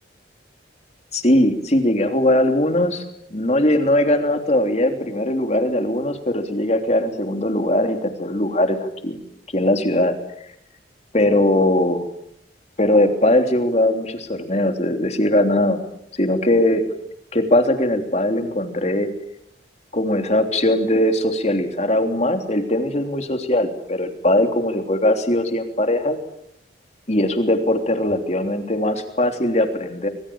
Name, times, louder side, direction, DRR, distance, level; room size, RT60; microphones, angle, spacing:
voice 1, 1.1-3.0 3.3-8.8 9.0-9.2 9.5-10.1 11.1-12.0 12.8-15.8 16.1-16.8 17.3-19.1 19.9-26.2 27.1-30.1, left 1 dB, 35° left, 6 dB, 3.3 m, -20 dB
25.5 x 23.0 x 8.8 m, 0.74 s
head